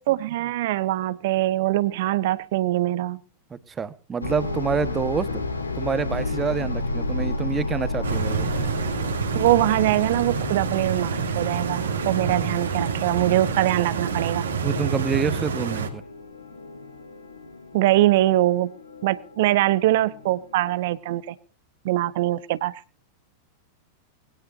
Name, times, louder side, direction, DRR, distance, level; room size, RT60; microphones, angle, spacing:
voice 1, 0.0-3.2 9.3-14.4 17.7-18.7 19.0-21.4 21.8-22.8, right 15 dB, 55° right, 17 dB, 1.1 m, -23 dB
voice 2, 3.5-5.3 5.7-8.5 14.6-16.0, right 6 dB, 20° right, 14 dB, 1.4 m, -27 dB
sound 1, 4.2-20.9, left 2 dB, 80° left, 2.3 m, -33 dB
Stream, 8.0-15.9, right 6 dB, 70° right, 2.8 m, -28 dB
21.5 x 17.5 x 2.8 m, 0.38 s
figure-of-eight pair, 90°, 0 cm